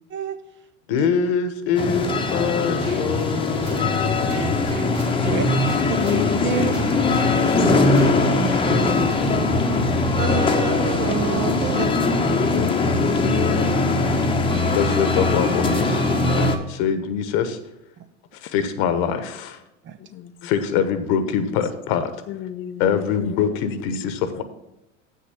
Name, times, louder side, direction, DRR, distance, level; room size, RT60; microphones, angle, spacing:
voice 1, 0.9-4.1 5.2-6.0 6.4-8.3 14.7-16.0 16.4-17.6 18.3-19.6 20.4-22.1 22.8-24.4, left 7 dB, 55° left, 1.1 m, -24 dB
sound 1, 1.8-16.6, left 2 dB, 15° left, 0.9 m, -21 dB
sound 2, 2.8-3.0 3.6-3.9 4.3-5.4 5.7-6.2 6.7-7.3 7.9-8.1 8.5-8.7 9.1-9.3, right 1 dB, 80° right, 3.1 m, -39 dB
voice 2, 5.9-10.0 11.7-13.9 20.0-20.3 22.3-23.6 23.9-24.0 24.3-24.4, left 11 dB, 35° left, 0.6 m, -30 dB
voice 3, 10.2-11.9 16.4-16.5 19.9-20.0, right 8 dB, 30° right, 0.7 m, -28 dB
7.6 x 6.6 x 5.9 m
hypercardioid pair, 95°, 37 cm